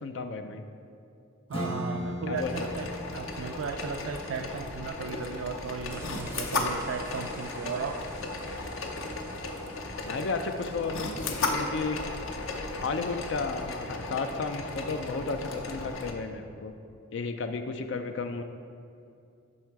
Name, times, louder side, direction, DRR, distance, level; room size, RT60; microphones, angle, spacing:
voice 1, 0.0-0.6 2.3-2.5 10.1-12.0 12.8-16.7 17.1-18.4, left 4 dB, 65° left, 7 dB, 0.4 m, -33 dB
Acoustic guitar / Strum, 1.5-6.7, left 1 dB, 25° left, 0.9 m, -40 dB
voice 2, 1.5-8.0, right 5 dB, 80° right, 4 dB, 0.4 m, -36 dB
sound 1, 2.4-16.1, left 3 dB, 85° left, 0.7 m, -35 dB
sound 2, 5.9-15.3, right 1 dB, 15° right, 0.4 m, -49 dB
11.0 x 3.7 x 4.6 m, 2.5 s
head